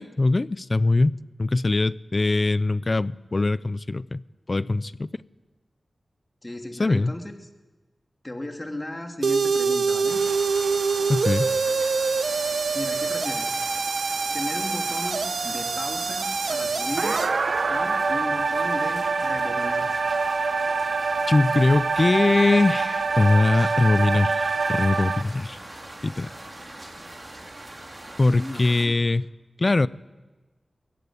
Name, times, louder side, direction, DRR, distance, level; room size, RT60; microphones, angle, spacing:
voice 1, 0.0-4.2 4.5-5.1 6.8-7.1 11.1-11.5 21.3-25.6 26.0-26.3 28.2-29.3 29.6-29.9, left 2 dB, 40° left, 18 dB, 0.6 m, -22 dB
voice 2, 6.4-7.3 8.2-10.2 12.7-13.6 14.3-17.2 17.7-20.0 28.3-29.0, left 1 dB, 25° left, 4 dB, 2.8 m, -35 dB
sound 1, 9.2-25.2, right 4 dB, 70° right, 1.0 m, -25 dB
sound 2, 10.1-28.9, right 1 dB, 35° right, 4.8 m, -42 dB
22.0 x 15.5 x 9.5 m, 1.2 s
wide cardioid pair, 65°, 0 cm